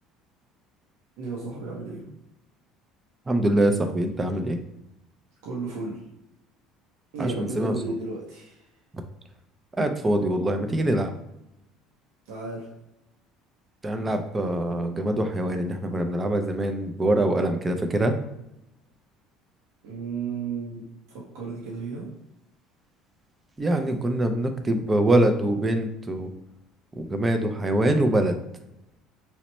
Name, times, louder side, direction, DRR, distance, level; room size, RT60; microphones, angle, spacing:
voice 1, 1.2-2.0 5.4-6.0 7.1-8.7 12.3-12.7 19.8-20.9 21.1-22.1, right 4 dB, 85° right, -4 dB, 0.7 m, -33 dB
voice 2, 3.3-4.6 7.2-7.7 9.8-11.1 13.8-18.2 23.6-26.3 27.0-28.4, right 1 dB, 15° right, 6 dB, 0.4 m, -24 dB
2.9 x 2.1 x 4.1 m, 0.85 s
cardioid pair, 125°, 0 cm